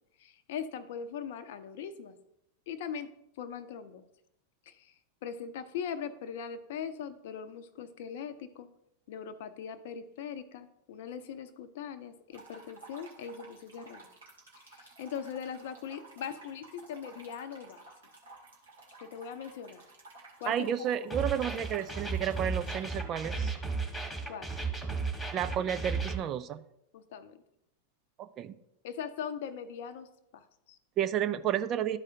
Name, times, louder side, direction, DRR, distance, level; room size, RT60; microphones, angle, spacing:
voice 1, 0.2-2.1 2.7-3.1 3.4-4.1 4.7-4.9 5.2-8.7 9.1-14.1 14.6-17.9 19.0-19.8 20.4-20.9 24.3-24.5 26.9-27.4 28.8-30.1 30.3-30.8, left 7 dB, 55° left, 11 dB, 0.6 m, -40 dB
sound 1, 12.3-22.9, right 3 dB, 65° right, 2.0 m, -54 dB
voice 2, 20.5-23.5 25.3-26.6 28.2-28.5 31.0-32.0, right 10 dB, 30° right, 10 dB, 0.4 m, -31 dB
sound 2, 21.1-26.1, right 4 dB, 5° left, 1.7 m, -34 dB
12.5 x 4.8 x 2.8 m, 0.82 s
figure-of-eight pair, 90°, 0 cm